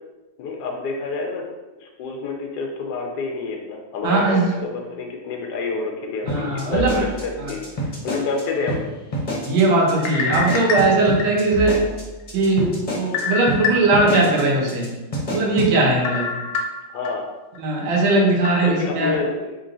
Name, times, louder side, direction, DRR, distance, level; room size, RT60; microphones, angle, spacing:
voice 1, 0.4-1.4 1.8-6.9 7.2-8.8 16.9-17.3 18.6-19.5, left 4 dB, 70° left, 1 dB, 0.9 m, -28 dB
voice 2, 4.0-4.6 6.2-7.0 7.4-7.5 9.4-11.8 12.3-14.9 15.3-16.3 17.6-19.1, right 2 dB, 70° right, -1 dB, 1.6 m, -19 dB
sound 1, 6.3-8.4 8.7-8.8 9.1-9.6 9.9-10.1 10.3-13.2 13.5-13.6 13.9-14.4 14.7-14.9 15.1-15.7, right 1 dB, 30° left, 0.8 m, -27 dB
sound 2, 10.0-11.7 12.2-12.3 13.1-14.2 14.6-14.7 16.1-17.1 17.6-17.7 18.5-18.7, left 5 dB, 90° left, 1.5 m, -26 dB
4.0 x 2.9 x 3.8 m, 1.1 s
omnidirectional pair, 2.3 m